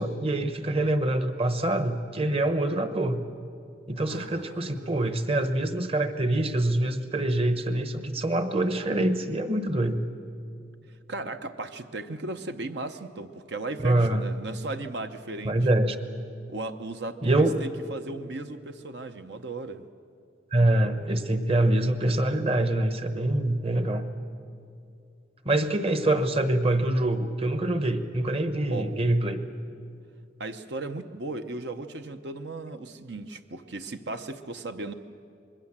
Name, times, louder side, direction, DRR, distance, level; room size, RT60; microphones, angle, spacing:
voice 1, 0.0-3.2 3.9-10.1 13.8-14.3 15.4-16.0 17.2-17.6 20.5-24.0 25.4-29.4, right 1 dB, 30° right, 9 dB, 1.1 m, -25 dB
voice 2, 4.1-5.2 11.1-15.6 16.5-19.8 28.7-28.9 30.4-34.9, right 2 dB, 65° right, 8 dB, 0.8 m, -36 dB
26.0 x 21.0 x 7.4 m, 2.5 s
head